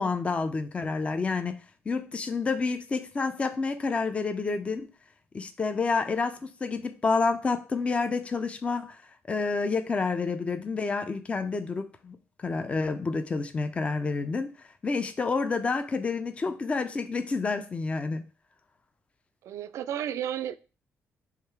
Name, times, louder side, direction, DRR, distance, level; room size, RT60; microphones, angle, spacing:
voice 1, 0.0-1.6 1.9-4.9 5.3-9.0 9.3-18.2, left 4 dB, 25° left, 0.4 m, -29 dB
voice 2, 19.4-20.6, right 10 dB, 75° right, 0.3 m, -32 dB
3.6 x 3.2 x 4.4 m
cardioid pair, 135°, 5 cm